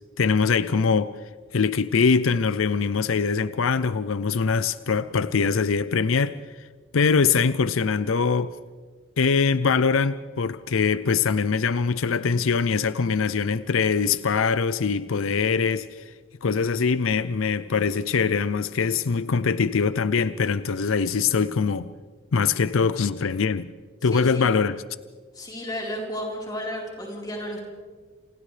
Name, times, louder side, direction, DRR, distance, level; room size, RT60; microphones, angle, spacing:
voice 1, 0.2-1.1 1.5-6.4 6.9-8.6 9.2-16.1 16.4-21.9 22.3-23.7 24.0-24.8, left 5 dB, 85° left, 0.5 m, -23 dB
voice 2, 24.1-24.5 25.3-27.7, equal, 20° left, 4.1 m, -33 dB
28.5 x 27.5 x 3.3 m
head